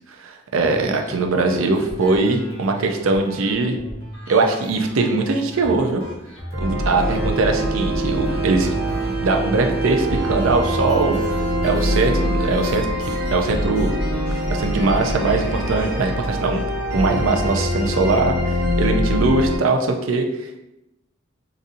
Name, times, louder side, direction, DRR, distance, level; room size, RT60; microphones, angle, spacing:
voice 1, 0.2-3.8 4.3-6.0 6.6-8.7 9.1-11.2 11.6-13.9 14.5-16.6 16.9-20.6, right 3 dB, 80° right, 4 dB, 0.5 m, -21 dB
sound 1, 0.6-16.6, equal, 65° left, 1.3 m, -37 dB
sound 2, 6.5-19.6, left 1 dB, 50° right, 1.2 m, -24 dB
sound 3, 7.0-12.9, right 6 dB, 10° right, 0.4 m, -29 dB
4.0 x 2.6 x 2.5 m, 0.91 s
head